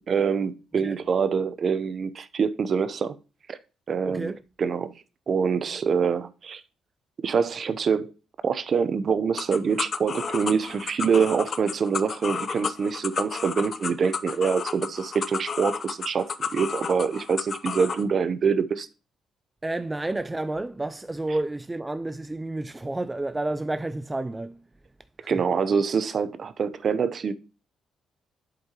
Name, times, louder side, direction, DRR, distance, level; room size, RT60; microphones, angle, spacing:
voice 1, 0.1-3.2 3.5-3.6 3.9-4.3 4.6-5.0 5.3-6.6 7.2-8.1 8.4-18.9 25.3-27.3, right 6 dB, 50° right, 0.7 m, -25 dB
voice 2, 4.1-4.4 19.6-24.6 25.2-25.4, right 2 dB, 15° right, 0.3 m, -30 dB
Guiro Rhythm Loop Remix, 9.4-18.0, left 6 dB, 45° left, 0.6 m, -32 dB
7.7 x 7.6 x 2.9 m
cardioid pair, 90°, 0 cm